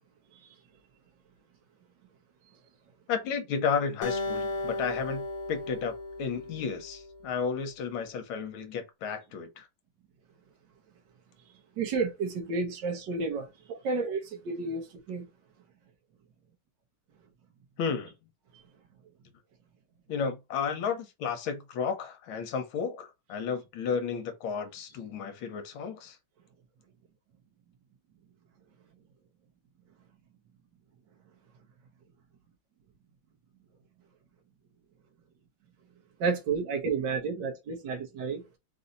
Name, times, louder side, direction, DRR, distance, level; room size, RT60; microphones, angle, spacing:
voice 1, 3.1-9.7 17.8-18.1 20.1-26.2, left 6 dB, 75° left, 1.6 m, -33 dB
Acoustic guitar, 4.0-7.4, left 2 dB, 40° left, 1.3 m, -35 dB
voice 2, 11.8-15.2 36.2-38.4, right 4 dB, 60° right, 1.4 m, -31 dB
4.0 x 2.7 x 3.9 m
omnidirectional pair, 2.4 m